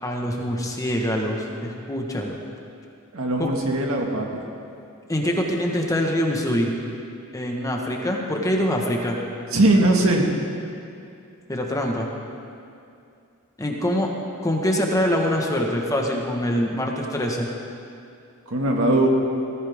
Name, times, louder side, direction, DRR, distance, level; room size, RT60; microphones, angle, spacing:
voice 1, 0.0-2.3 3.4-3.5 5.1-6.7 7.3-9.2 11.5-12.1 13.6-14.1 14.4-17.5, equal, 15° left, 0 dB, 1.4 m, -24 dB
voice 2, 3.1-4.3 9.5-10.3 18.5-19.1, right 2 dB, 70° right, 0 dB, 2.0 m, -20 dB
19.5 x 15.0 x 3.7 m, 2.5 s
head